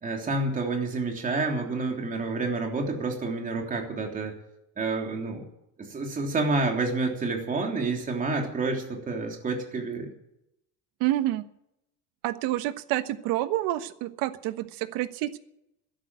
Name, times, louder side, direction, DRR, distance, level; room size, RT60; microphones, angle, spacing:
voice 1, 0.0-4.4 4.8-5.5 5.8-10.1, right 3 dB, 25° right, 2 dB, 3.2 m, -29 dB
voice 2, 11.0-11.5 12.2-15.4, right 15 dB, 75° right, 11 dB, 1.3 m, -28 dB
13.0 x 11.0 x 9.7 m, 0.84 s
cardioid pair, 160°, 35 cm